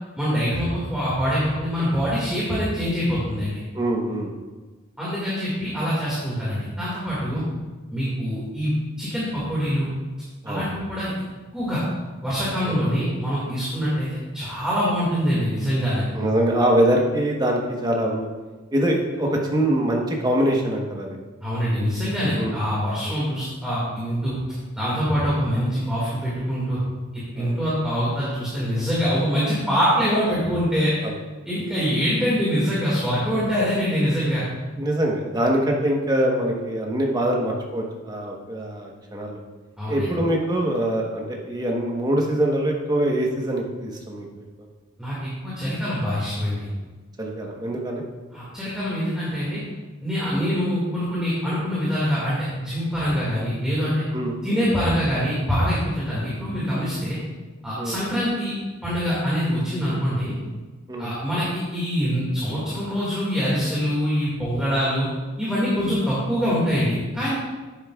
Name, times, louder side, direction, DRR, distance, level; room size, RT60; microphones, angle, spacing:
voice 1, 0.2-3.6 5.0-7.4 7.9-9.9 10.5-11.1 11.5-11.8 12.2-16.0 21.4-24.3 24.8-26.8 27.1-30.9 31.5-34.4 39.8-40.1 45.0-46.7 48.3-49.6 50.0-54.0 54.4-57.2 57.6-58.5 58.8-60.4 61.0-65.1 65.4-67.3, equal, 5° right, -9 dB, 2.0 m, -24 dB
voice 2, 3.7-4.3 7.3-7.4 10.4-10.6 12.6-12.8 16.1-18.3 18.7-21.2 22.3-22.6 23.0-23.2 27.4-27.6 31.0-31.1 34.8-39.4 39.9-44.4 47.2-48.0 54.1-54.6 57.8-57.9 60.9-61.1, right 1 dB, 20° right, 0 dB, 1.1 m, -24 dB
10.5 x 8.6 x 2.4 m, 1.3 s
head